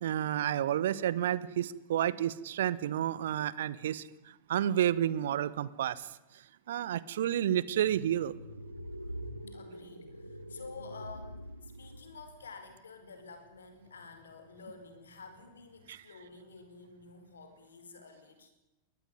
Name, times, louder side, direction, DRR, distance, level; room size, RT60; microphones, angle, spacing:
voice 1, 0.0-4.1 4.5-6.1 6.7-8.3 15.9-16.0, right 11 dB, 60° right, 19 dB, 1.0 m, -30 dB
sound 1, 7.6-12.5, equal, 90° right, 1.6 m, -45 dB
voice 2, 9.5-18.5, left 4 dB, 70° left, 8 dB, 4.7 m, -50 dB
22.0 x 18.5 x 9.8 m, 0.98 s
figure-of-eight pair, 90°, 0 cm